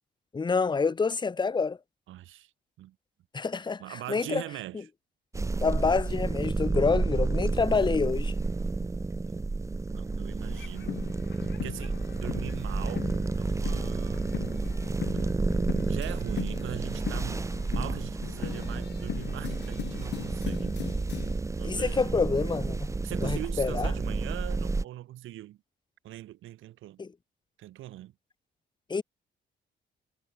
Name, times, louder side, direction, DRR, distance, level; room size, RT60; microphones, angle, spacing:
voice 1, 0.3-1.8 3.3-3.8 4.1-4.4 5.6-8.3 21.6-22.9 23.2-23.9 27.0-27.1 28.9-29.0, left 4 dB, 20° left, 0.8 m, -27 dB
voice 2, 2.1-2.5 2.8-3.0 3.8-4.9 9.2-9.4 9.9-11.0 11.6-13.1 13.4-14.4 15.1-15.2 15.9-17.4 17.7-20.8 21.6-22.2 23.0-25.6 26.0-27.0 27.6-28.1, right 14 dB, 85° right, 2.2 m, -41 dB
sound 1, 5.3-24.8, right 3 dB, 15° right, 0.6 m, -31 dB
sound 2, 10.4-21.4, left 10 dB, 60° left, 1.2 m, -40 dB
cardioid pair, 90°, 20 cm